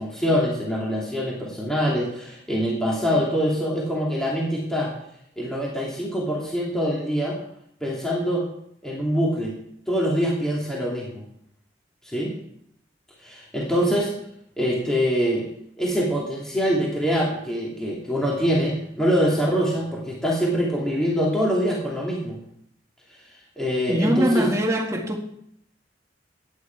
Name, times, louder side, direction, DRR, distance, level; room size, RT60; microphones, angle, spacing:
voice 1, 0.0-4.9 5.4-7.4 7.8-8.5 8.8-9.5 9.9-11.2 12.1-12.3 13.2-14.1 14.6-15.5 15.8-22.4 23.6-24.5, equal, 5° left, 2.7 m, -24 dB
voice 2, 23.9-25.2, equal, 15° right, 1.9 m, -22 dB
15.0 x 9.7 x 4.7 m
head